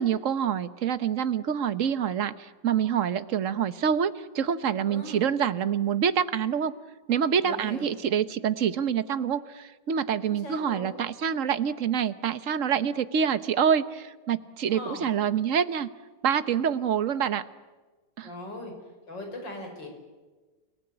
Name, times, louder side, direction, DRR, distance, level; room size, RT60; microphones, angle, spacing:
voice 1, 0.0-6.7 7.1-15.9 16.2-17.4 18.2-18.3, right 8 dB, 50° right, 13 dB, 1.2 m, -26 dB
voice 2, 4.9-5.2 7.4-8.0 10.2-11.0 14.7-15.1 18.2-18.7 19.1-19.9, left 1 dB, 90° left, 3 dB, 6.1 m, -39 dB
29.0 x 19.0 x 9.8 m, 1.3 s
omnidirectional pair, 1.9 m